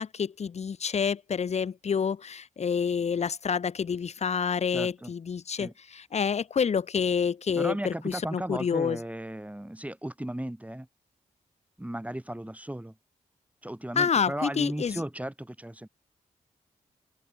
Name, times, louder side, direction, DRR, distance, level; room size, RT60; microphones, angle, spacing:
voice 1, 0.0-9.0 14.0-15.0, left 6 dB, 50° left, 0.7 m, -28 dB
voice 2, 4.7-5.1 5.5-5.7 7.6-10.9 11.8-12.9 13.6-15.9, right 1 dB, 10° right, 5.8 m, -35 dB
open air
cardioid pair, 55°, 14 cm